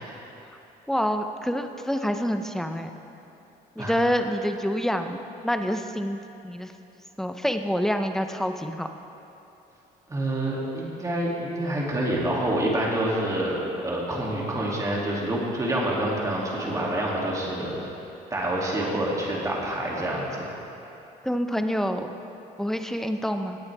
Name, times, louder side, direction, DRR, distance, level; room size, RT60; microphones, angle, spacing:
voice 1, 0.9-2.9 3.8-5.2 5.4-6.7 7.2-8.9 21.2-22.1 22.6-23.6, equal, ahead, 6 dB, 0.6 m, -27 dB
voice 2, 10.1-17.9 18.3-20.5, right 1 dB, 20° right, -4 dB, 2.6 m, -27 dB
17.0 x 8.7 x 3.5 m, 2.9 s
cardioid pair, 110°, 17 cm